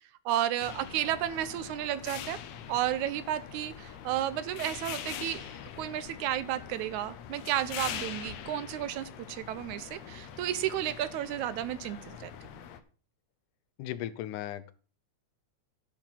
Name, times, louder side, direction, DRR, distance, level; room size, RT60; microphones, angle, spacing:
voice 1, 0.3-2.4 2.7-5.5 5.8-12.3, right 12 dB, 80° right, 15 dB, 2.0 m, -32 dB
sound 1, 0.6-12.8, left 9 dB, 70° left, 2.0 m, -43 dB
voice 2, 13.8-14.7, left 12 dB, 85° left, 14 dB, 2.3 m, -36 dB
10.5 x 6.9 x 5.8 m, 0.39 s
omnidirectional pair, 3.5 m